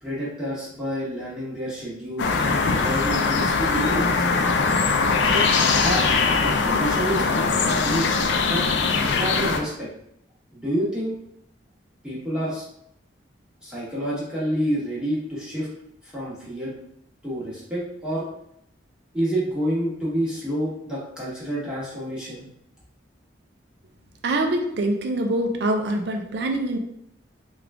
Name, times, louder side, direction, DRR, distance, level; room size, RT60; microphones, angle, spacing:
voice 1, 0.0-4.3 5.2-8.6 9.0-9.9 10.5-11.1 12.0-12.6 13.6-15.7 16.0-16.7 17.2-18.2 19.1-22.4, equal, 5° right, -8 dB, 1.1 m, -29 dB
sound 1, 2.2-9.6, left 4 dB, 65° left, 0.4 m, -21 dB
voice 2, 24.2-26.8, right 1 dB, 55° right, 4 dB, 0.4 m, -24 dB
3.6 x 2.3 x 3.4 m, 0.75 s
head